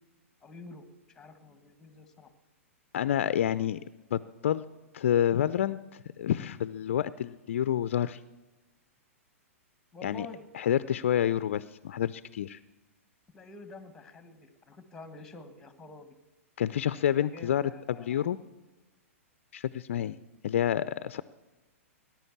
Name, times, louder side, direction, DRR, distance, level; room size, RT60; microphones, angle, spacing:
voice 1, 0.4-2.3 9.9-10.4 13.3-16.2 17.2-18.3, left 3 dB, 10° left, 10 dB, 1.5 m, -48 dB
voice 2, 2.9-3.8 4.1-4.6 4.9-8.2 10.0-10.3 10.5-12.6 16.6-18.4 19.5-20.2 20.4-21.2, left 10 dB, 60° left, 16 dB, 0.4 m, -28 dB
18.5 x 10.5 x 7.2 m, 1.2 s
figure-of-eight pair, 110°, 8 cm